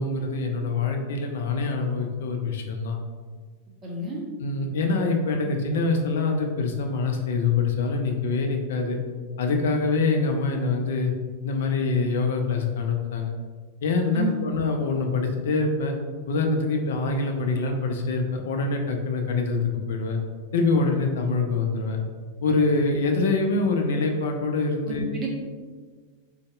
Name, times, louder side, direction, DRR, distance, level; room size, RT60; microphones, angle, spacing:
voice 1, 0.0-3.0 4.4-9.0 9.4-11.1 11.4-13.3 13.8-15.9 16.3-20.2 20.5-22.0 22.4-25.1, left 3 dB, 60° left, 4 dB, 0.5 m, -25 dB
voice 2, 3.8-4.2 14.1-14.3 24.8-25.3, right 3 dB, 25° right, -2 dB, 0.9 m, -30 dB
3.9 x 3.2 x 2.4 m, 1.5 s
figure-of-eight pair, 90°, 0 cm